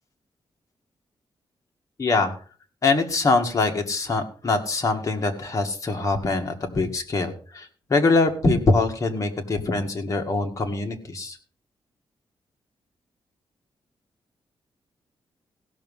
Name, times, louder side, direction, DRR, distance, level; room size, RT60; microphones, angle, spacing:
voice 1, 2.0-2.4 2.8-11.4, left 3 dB, 35° left, 4 dB, 1.9 m, -23 dB
16.5 x 6.2 x 5.5 m, 0.41 s
wide cardioid pair, 145°, 9 cm